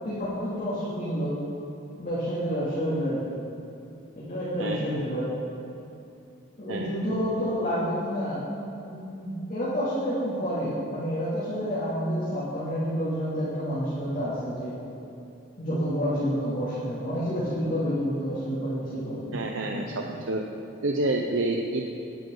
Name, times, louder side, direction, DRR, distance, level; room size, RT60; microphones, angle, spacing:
voice 1, 0.0-1.3 2.0-3.4 4.1-5.4 6.6-8.4 8.8-14.8 15.6-20.1, equal, 40° left, -10 dB, 2.7 m, -29 dB
voice 2, 19.3-20.4 20.8-21.9, right 2 dB, 75° right, 2 dB, 0.8 m, -28 dB
18.5 x 10.5 x 3.9 m, 2.8 s
head